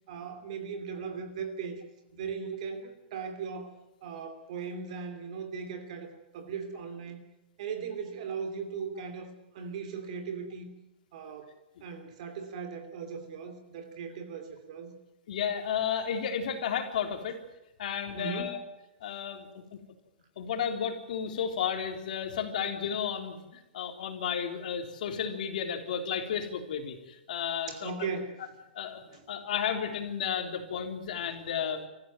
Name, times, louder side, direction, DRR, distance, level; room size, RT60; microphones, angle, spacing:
voice 1, 0.1-1.8 2.1-3.7 4.0-7.2 7.6-10.7 11.1-11.5 11.8-14.9 18.2-18.6 27.7-28.5 29.1-29.2 31.2-31.3, right 5 dB, 40° right, 8 dB, 2.8 m, -38 dB
voice 2, 15.3-17.4 17.8-18.6 19.0-19.6 20.4-28.1 28.7-29.0 29.3-31.9, left 8 dB, 50° left, 5 dB, 3.6 m, -33 dB
25.5 x 15.0 x 9.1 m, 0.98 s
hypercardioid pair, 180°, 6 cm